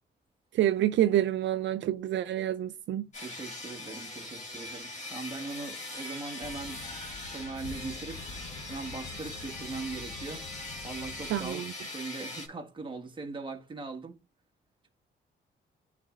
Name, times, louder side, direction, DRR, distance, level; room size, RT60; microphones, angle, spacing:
voice 1, 0.5-3.1 11.3-11.7, right 12 dB, 70° right, 0.5 m, -27 dB
sound 1, 3.1-12.5, left 2 dB, 35° left, 2.8 m, -41 dB
voice 2, 3.2-7.0 7.3-8.2 8.7-10.4 10.8-11.6 11.9-14.2, right 3 dB, 25° right, 1.5 m, -40 dB
sound 2, 6.4-11.5, left 4 dB, 65° left, 1.1 m, -46 dB
10.5 x 4.2 x 2.5 m
cardioid pair, 90°, 20 cm